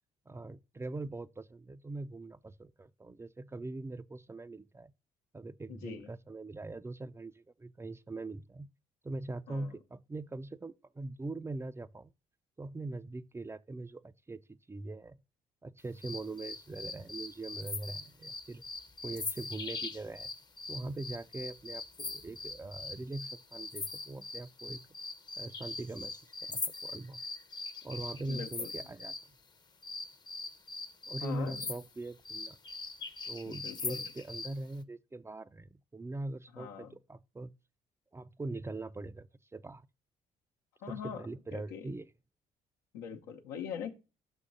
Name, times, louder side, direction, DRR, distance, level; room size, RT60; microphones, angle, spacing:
voice 1, 0.3-4.9 5.3-8.7 9.0-12.1 12.6-15.2 15.6-18.6 19.0-20.3 20.7-24.9 25.4-27.2 27.8-29.4 31.1-32.6 33.3-37.5 38.1-39.9 40.9-42.1, right 2 dB, 15° right, 0.4 m, -42 dB
voice 2, 5.7-6.1 9.5-9.7 28.3-28.7 31.2-31.7 33.5-34.1 36.5-36.9 40.8-41.2 41.5-41.9 42.9-43.9, left 8 dB, 90° left, 0.9 m, -42 dB
sound 1, 16.0-29.3 29.8-34.6, left 3 dB, 25° left, 0.7 m, -41 dB
6.2 x 3.7 x 5.3 m
supercardioid pair, 65°, 16 cm